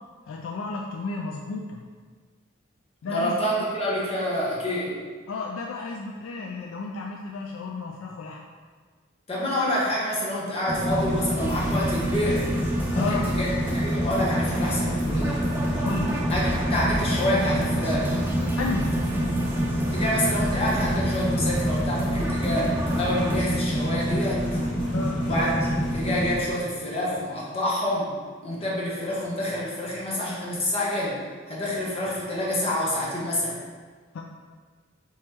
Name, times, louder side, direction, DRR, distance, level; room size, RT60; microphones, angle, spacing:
voice 1, 0.3-1.8 3.0-3.7 5.3-8.4 13.0-13.2 15.8-16.2 18.6-19.0 24.9-25.2 34.1-34.2, left 3 dB, 85° left, 0 dB, 0.4 m, -32 dB
voice 2, 3.0-5.0 9.3-12.5 12.9-15.4 16.3-18.1 19.9-24.4 25.3-25.5 25.9-28.1 28.4-31.2 31.5-33.6, left 1 dB, 30° left, -6 dB, 1.0 m, -27 dB
sound 1, 10.7-26.4, equal, 65° left, 1.2 m, -27 dB
sound 2, 11.4-23.4, equal, 10° right, 0.3 m, -32 dB
3.5 x 3.0 x 4.3 m, 1.5 s
head